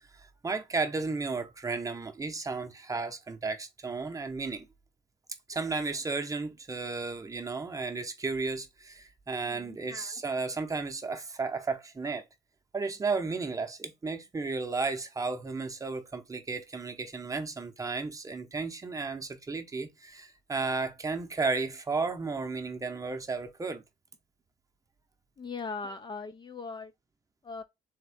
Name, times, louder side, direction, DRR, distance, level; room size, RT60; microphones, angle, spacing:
voice 1, 0.1-4.7 5.5-12.2 12.7-23.8 25.8-25.9, right 4 dB, 20° right, 0.8 m, -33 dB
voice 2, 9.4-9.8 25.4-26.9 27.4-27.6, left 4 dB, 25° left, 0.4 m, -39 dB
3.6 x 3.5 x 3.4 m
cardioid pair, 110°, 17 cm